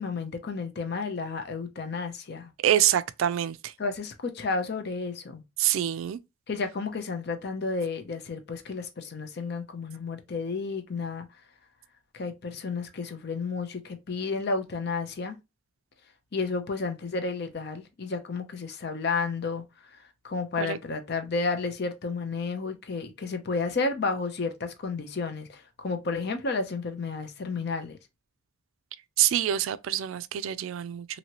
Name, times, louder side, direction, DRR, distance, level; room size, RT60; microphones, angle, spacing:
voice 1, 0.0-2.5 3.8-5.4 6.5-11.3 12.1-15.4 16.3-19.6 19.9-28.0, left 4 dB, 50° left, 0.5 m, -32 dB
voice 2, 2.6-3.7 5.6-6.2 20.6-20.8 29.2-31.1, right 11 dB, 75° right, 0.3 m, -25 dB
2.8 x 2.7 x 2.9 m
head